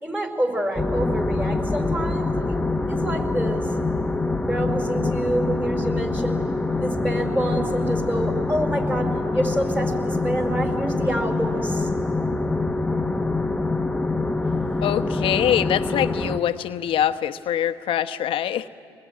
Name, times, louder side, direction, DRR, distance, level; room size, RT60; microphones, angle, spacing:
voice 1, 0.0-2.6 2.9-3.7 4.5-6.4 6.8-11.9, right 1 dB, 15° right, 4 dB, 4.6 m, -27 dB
sound 1, 0.8-16.4, left 3 dB, 10° left, 1.1 m, -25 dB
voice 2, 14.8-18.7, left 10 dB, 60° left, 10 dB, 1.0 m, -24 dB
25.5 x 20.5 x 9.4 m, 2.4 s
hypercardioid pair, 65°, 10 cm